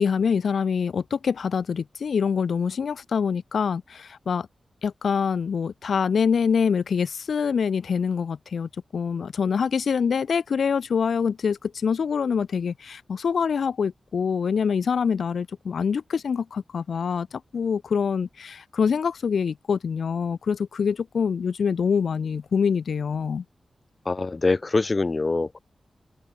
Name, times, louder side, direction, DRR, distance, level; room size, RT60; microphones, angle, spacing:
voice 1, 0.0-4.5 4.8-23.4, left 6 dB, 75° left, 0.4 m, -25 dB
voice 2, 24.1-25.6, left 3 dB, 30° left, 1.2 m, -24 dB
wide cardioid pair, 155°, 0 cm